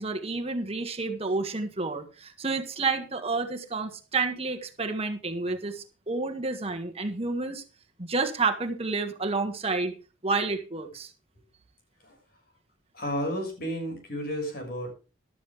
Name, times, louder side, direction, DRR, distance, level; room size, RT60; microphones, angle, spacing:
voice 1, 0.0-7.6 8.0-9.9 10.2-11.1, right 3 dB, 30° right, 5 dB, 1.6 m, -30 dB
voice 2, 12.9-15.0, equal, 50° left, 3 dB, 6.5 m, -32 dB
14.0 x 12.5 x 3.6 m, 0.32 s
head